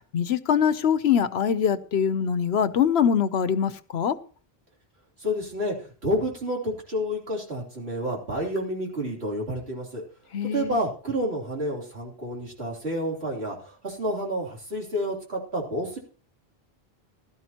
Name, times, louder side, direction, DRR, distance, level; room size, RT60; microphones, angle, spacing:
voice 1, 0.1-4.1 10.3-10.8, left 8 dB, 80° left, 14 dB, 1.0 m, -23 dB
voice 2, 5.2-10.0 10.5-16.0, equal, 85° right, -1 dB, 3.4 m, -29 dB
16.5 x 12.5 x 2.9 m, 0.38 s
omnidirectional pair, 1.1 m